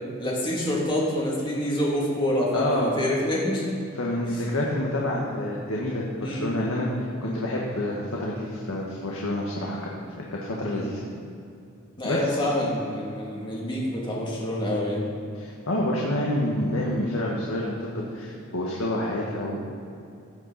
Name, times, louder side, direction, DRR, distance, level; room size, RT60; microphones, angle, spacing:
voice 1, 0.2-3.6 6.2-6.5 10.7-10.9 12.0-15.0, left 1 dB, 25° left, -4 dB, 2.8 m, -27 dB
voice 2, 2.5-2.9 3.9-6.9 7.2-9.9 10.3-11.0 12.0-12.3 15.3-19.6, left 1 dB, 90° left, -3 dB, 1.6 m, -28 dB
15.5 x 8.6 x 4.2 m, 2.6 s
head